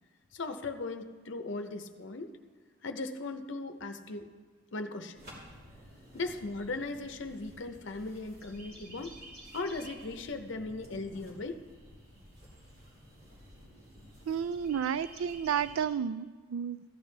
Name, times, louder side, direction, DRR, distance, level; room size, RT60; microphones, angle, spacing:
voice 1, 0.3-2.4 2.8-4.3 4.7-5.2 6.1-9.2 9.5-11.6, left 3 dB, 60° left, 7 dB, 0.7 m, -38 dB
sound 1, 5.1-15.9, right 1 dB, 50° right, 3.0 m, -52 dB
voice 2, 14.2-16.9, right 8 dB, 85° right, 16 dB, 0.4 m, -32 dB
15.0 x 10.0 x 3.3 m, 1.4 s
head